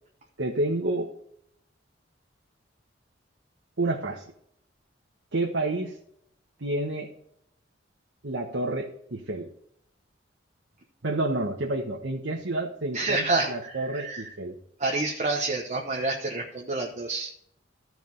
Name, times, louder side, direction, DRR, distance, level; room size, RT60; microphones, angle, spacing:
voice 1, 0.4-1.1 3.8-4.2 5.3-6.0 6.6-7.1 8.2-9.5 11.0-14.5, right 2 dB, 75° right, -1 dB, 1.2 m, -29 dB
voice 2, 12.9-14.3 14.8-17.3, right 3 dB, 40° right, 0 dB, 1.0 m, -28 dB
14.0 x 4.7 x 5.4 m, 0.72 s
head